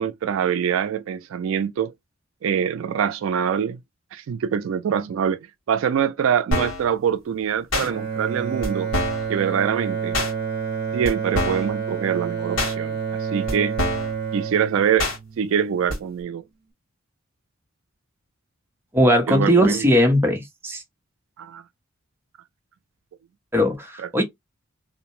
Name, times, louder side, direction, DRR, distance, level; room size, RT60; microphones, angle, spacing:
voice 1, 0.0-1.9 2.4-3.8 4.1-8.9 9.3-10.1 10.9-13.0 13.3-13.8 14.3-15.1 15.4-16.4 19.3-19.8 21.4-21.6, right 8 dB, 80° right, 0.3 m, -24 dB
sound 1, 6.5-6.8 7.7-7.9 8.6-8.7 8.9-9.3 10.1-10.3 11.0-11.1 11.3-11.7 12.6-12.7 13.5-13.6 13.8-14.1 15.0-15.2 15.9-16.0, left 1 dB, 80° left, 1.4 m, -24 dB
Bowed string instrument, 7.8-16.0, right 6 dB, 50° right, 0.7 m, -29 dB
voice 2, 18.9-20.8 23.5-24.2, equal, 10° right, 0.6 m, -19 dB
2.7 x 2.0 x 2.9 m
head